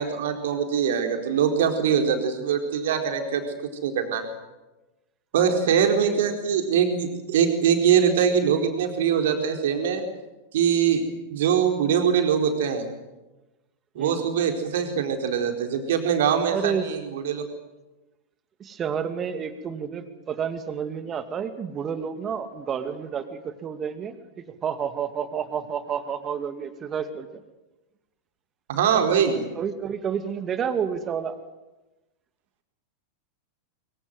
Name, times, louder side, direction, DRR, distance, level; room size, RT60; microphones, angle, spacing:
voice 1, 0.0-3.4 3.8-4.3 5.3-10.0 10.5-11.0 11.3-12.9 14.0-17.4 28.7-29.4, right 7 dB, 55° right, 4 dB, 4.2 m, -23 dB
voice 2, 6.0-6.3 14.0-14.2 16.5-16.9 18.6-24.2 24.5-27.4 29.2-31.4, right 7 dB, 25° right, 10 dB, 2.4 m, -30 dB
24.0 x 23.5 x 7.9 m, 1.1 s
figure-of-eight pair, 90°, 0 cm